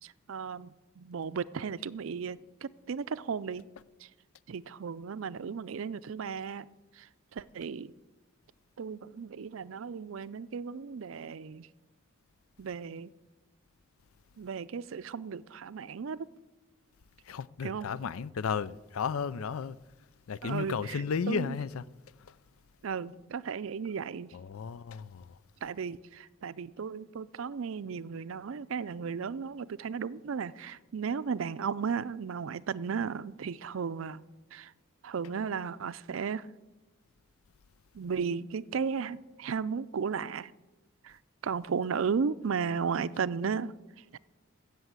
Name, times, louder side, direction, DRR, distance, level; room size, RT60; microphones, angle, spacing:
voice 1, 0.0-3.7 4.0-4.1 4.5-6.7 6.9-7.9 8.8-11.7 12.6-13.1 14.4-16.3 17.6-17.9 20.4-21.5 22.8-24.3 25.6-34.2 34.5-34.7 35.0-36.5 37.9-40.5 41.0-43.7 44.1-44.2, right 6 dB, 70° right, 0.4 m, -35 dB
voice 2, 17.3-19.8 20.3-21.8 22.3-22.4 24.3-25.3, left 6 dB, 85° left, 0.4 m, -34 dB
15.5 x 6.9 x 7.9 m
head